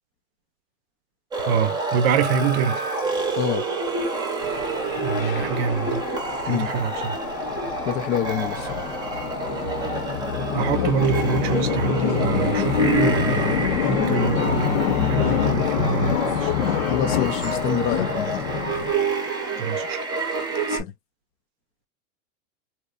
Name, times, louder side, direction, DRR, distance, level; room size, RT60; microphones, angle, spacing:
sound 1, 1.3-20.8, right 2 dB, 10° right, 0.7 m, -28 dB
voice 1, 1.5-2.8 5.0-6.0 6.5-7.2 10.5-16.5 19.6-20.0, right 7 dB, 50° right, 0.6 m, -25 dB
sound 2, 4.4-18.9, left 9 dB, 80° left, 1.0 m, -26 dB
voice 2, 7.9-8.8 10.8-10.9 16.9-18.5 20.7-20.9, left 9 dB, 35° left, 0.4 m, -26 dB
2.9 x 2.1 x 2.3 m
supercardioid pair, 135°, 40 cm